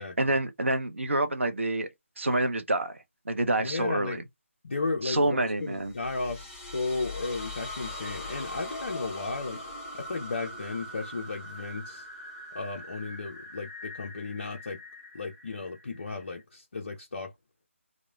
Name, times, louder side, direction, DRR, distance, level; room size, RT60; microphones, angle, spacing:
voice 1, 0.0-1.9 2.2-3.0 3.3-4.2 5.0-5.9, right 2 dB, 65° right, 0.6 m, -27 dB
voice 2, 3.6-4.2 4.6-9.6 9.9-12.1 12.5-14.8 15.1-17.3, left 3 dB, 45° left, 0.4 m, -34 dB
sound 1, 5.8-16.4, left 1 dB, 20° left, 0.9 m, -42 dB
3.0 x 2.0 x 2.2 m
figure-of-eight pair, 155°, 7 cm